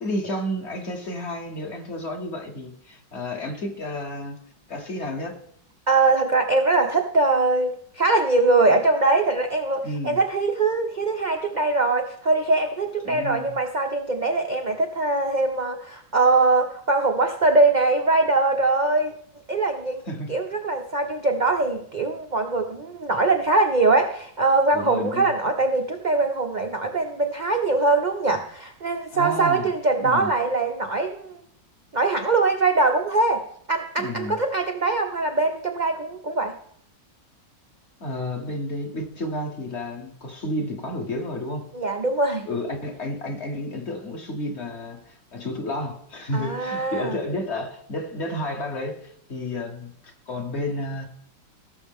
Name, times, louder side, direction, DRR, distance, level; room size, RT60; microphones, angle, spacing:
voice 1, 0.0-4.4 4.7-5.4 9.8-10.2 13.0-13.6 20.1-20.3 24.7-25.3 29.1-29.7 30.0-30.3 34.0-34.4 38.0-41.7 42.5-51.1, left 1 dB, 40° left, 4 dB, 1.2 m, -31 dB
voice 2, 5.9-19.2 19.5-31.4 31.9-36.5 41.7-42.5 46.3-47.1, right 3 dB, 65° right, 3 dB, 0.4 m, -22 dB
17.5 x 6.2 x 3.6 m, 0.64 s
omnidirectional pair, 2.0 m